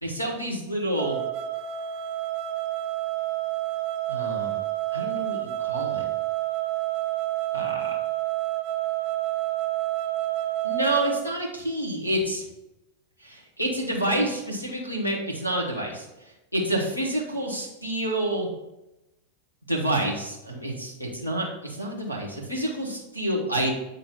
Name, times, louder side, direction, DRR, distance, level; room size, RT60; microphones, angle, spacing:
voice 1, 0.0-1.2 4.1-4.6 4.9-6.0 7.5-8.0 10.6-12.4 13.2-16.1 16.5-18.5 19.7-23.7, right 1 dB, 85° left, -1 dB, 1.9 m, -28 dB
sound 1, 1.0-11.2, right 15 dB, 45° right, 0.5 m, -29 dB
8.4 x 3.8 x 4.5 m, 0.95 s
figure-of-eight pair, 90°, 0 cm